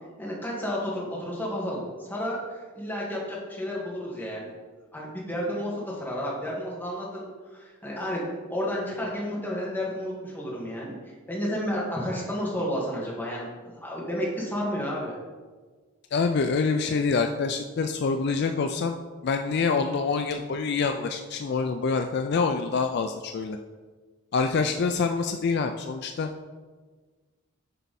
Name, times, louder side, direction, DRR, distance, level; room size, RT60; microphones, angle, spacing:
voice 1, 0.2-4.5 4.9-10.9 11.3-15.2, equal, 10° left, -5 dB, 1.8 m, -31 dB
voice 2, 16.1-19.0 19.2-23.6 24.3-26.3, left 4 dB, 50° left, 6 dB, 0.4 m, -26 dB
9.3 x 4.6 x 4.1 m, 1.4 s
head